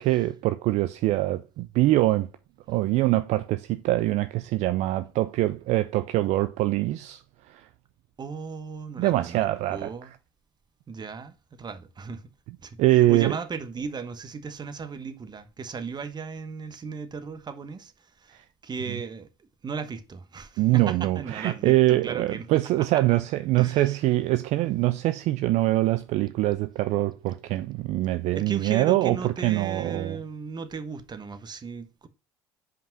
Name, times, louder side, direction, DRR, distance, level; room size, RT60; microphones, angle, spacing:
voice 1, 0.0-2.3 2.7-7.7 9.0-10.2 12.5-13.4 18.3-18.4 18.9-19.0 20.6-30.2, right 16 dB, 65° right, 0.5 m, -24 dB
voice 2, 8.2-10.1 10.9-12.2 12.6-12.8 13.1-17.9 18.2-18.4 18.6-19.3 19.6-22.4 22.8-22.9 23.6-23.9 28.3-32.1, right 5 dB, 35° right, 1.3 m, -36 dB
5.4 x 5.2 x 5.8 m
hypercardioid pair, 65°, 13 cm